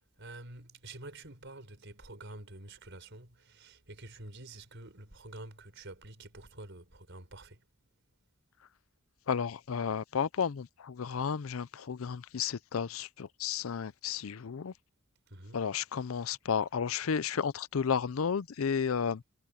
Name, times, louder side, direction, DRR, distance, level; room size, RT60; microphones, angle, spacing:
voice 1, 0.2-7.6 15.3-15.6, right 2 dB, 60° right, 5.3 m, -48 dB
voice 2, 9.3-14.7 15.5-19.2, left 6 dB, 75° left, 0.5 m, -32 dB
head